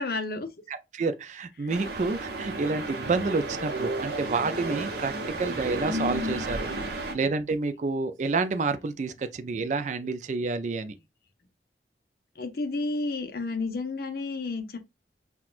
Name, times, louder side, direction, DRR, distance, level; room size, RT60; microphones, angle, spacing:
voice 1, 0.0-0.5 1.6-1.7 12.4-14.8, left 3 dB, 60° left, 0.7 m, -31 dB
voice 2, 0.7-11.0, right 4 dB, 40° right, 0.4 m, -29 dB
sound 1, 1.7-7.1, right 1 dB, 65° right, 0.8 m, -32 dB
5.8 x 2.3 x 2.4 m
head